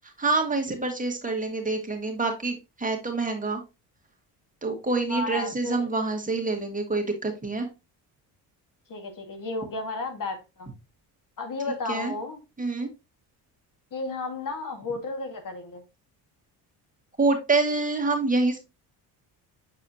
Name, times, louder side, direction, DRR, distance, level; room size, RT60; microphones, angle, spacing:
voice 1, 0.2-3.6 4.6-7.7 11.9-12.1 12.6-12.9 17.2-18.6, right 3 dB, 20° right, 1.8 m, -26 dB
voice 2, 5.1-5.9 8.9-10.7 11.4-12.4 13.9-15.8, left 3 dB, 50° left, 1.8 m, -33 dB
7.7 x 4.8 x 2.7 m
supercardioid pair, 80°, 43 cm